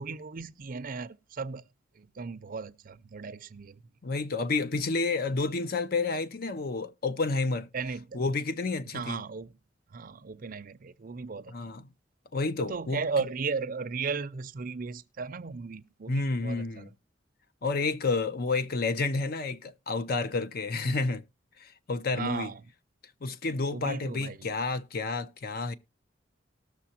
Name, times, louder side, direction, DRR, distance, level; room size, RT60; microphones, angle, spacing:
voice 1, 0.0-1.6 2.0-3.8 7.7-8.2 8.9-9.6 9.9-11.9 12.6-16.9 22.2-22.6 23.7-24.5, right 4 dB, 50° right, 0.5 m, -36 dB
voice 2, 4.0-7.7 8.1-9.2 11.5-11.9 12.3-13.0 16.1-16.9 17.6-21.2 21.6-22.5 23.2-25.7, left 3 dB, 55° left, 0.7 m, -30 dB
19.0 x 6.5 x 2.8 m
head